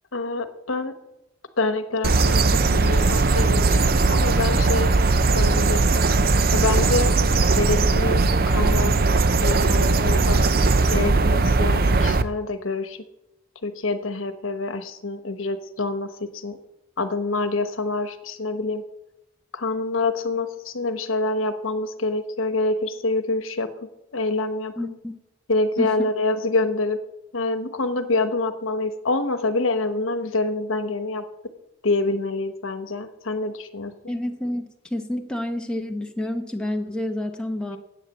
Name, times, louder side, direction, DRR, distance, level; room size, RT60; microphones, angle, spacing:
voice 1, 0.1-0.9 1.6-4.9 5.3-6.0 6.5-7.1 7.5-8.9 9.4-10.4 10.9-13.0 13.6-16.6 17.0-18.8 19.5-23.7 24.1-24.9 25.5-27.0 27.3-31.2 31.8-33.9, left 3 dB, 80° left, 10 dB, 1.0 m, -26 dB
sound 1, 2.0-12.2, right 3 dB, 45° right, 0.5 m, -19 dB
voice 2, 24.8-25.1 25.8-25.9 34.1-37.8, left 1 dB, 5° left, 2 dB, 0.8 m, -29 dB
9.9 x 8.3 x 7.2 m, 0.91 s
head